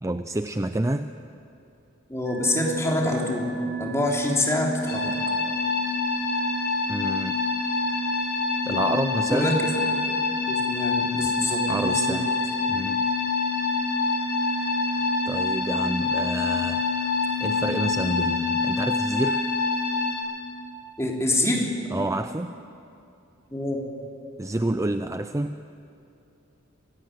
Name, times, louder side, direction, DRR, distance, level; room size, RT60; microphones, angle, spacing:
voice 1, 0.0-1.1 6.9-7.4 8.6-9.6 11.7-12.3 12.7-13.0 15.3-16.9 17.4-19.5 21.9-22.6 24.4-25.7, right 2 dB, 15° right, 9 dB, 0.5 m, -28 dB
voice 2, 2.1-3.5 3.8-5.2 9.3-9.6 10.5-12.2 21.0-21.7 23.5-23.8, left 1 dB, 15° left, -1 dB, 3.5 m, -26 dB
sound 1, 2.3-20.1, left 2 dB, 55° right, 1.4 m, -32 dB
sound 2, 4.9-20.2, left 4 dB, 50° left, 7.7 m, -27 dB
28.0 x 16.5 x 9.2 m, 2.8 s
head